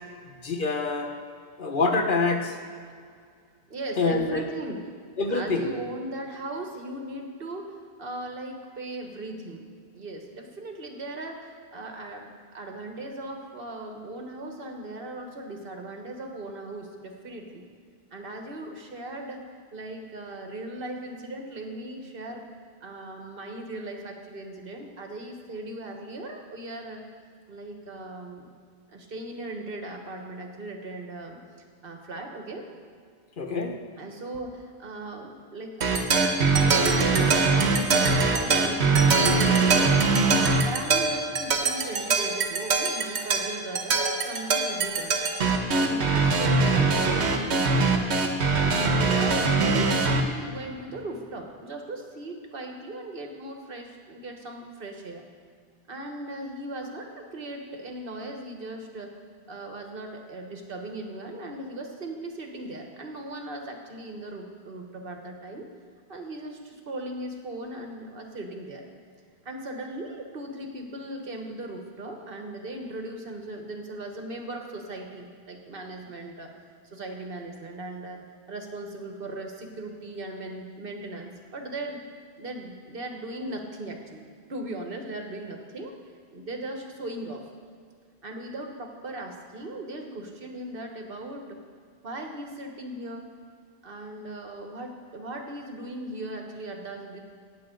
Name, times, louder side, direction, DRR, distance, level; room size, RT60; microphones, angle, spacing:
voice 1, 0.4-1.1 1.6-2.5 4.0-4.4 5.2-5.7 33.4-33.7, left 3 dB, 50° left, 4 dB, 1.2 m, -25 dB
voice 2, 3.7-4.9 5.3-9.6 9.9-17.7 18.1-19.4 19.7-22.5 22.8-27.0 27.5-28.5 28.9-31.4 31.8-32.7 34.0-40.0 40.6-45.2 45.7-48.1 48.6-55.3 55.9-59.1 59.5-65.7 66.1-68.8 69.4-76.5 76.9-78.2 78.5-82.0 82.4-86.0 86.3-87.5 88.2-91.6 92.0-93.3 93.8-97.2, right 1 dB, 60° right, 3 dB, 1.5 m, -38 dB
sound 1, 35.8-50.2, right 3 dB, 85° right, 1.2 m, -22 dB
17.5 x 7.7 x 3.9 m, 2.1 s
omnidirectional pair, 1.1 m